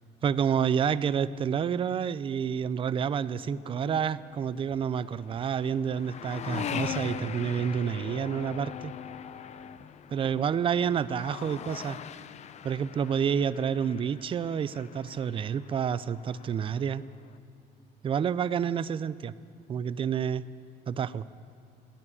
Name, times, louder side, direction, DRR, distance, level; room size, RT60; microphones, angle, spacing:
voice 1, 0.2-8.9 10.1-12.0 12.6-17.0 18.0-19.3 19.7-20.4 20.9-21.3, right 7 dB, 30° right, 17 dB, 0.4 m, -29 dB
sound 1, 3.0-17.4, left 8 dB, 40° left, 0.5 m, -41 dB
14.0 x 9.9 x 9.8 m, 2.3 s
cardioid pair, 110°, 17 cm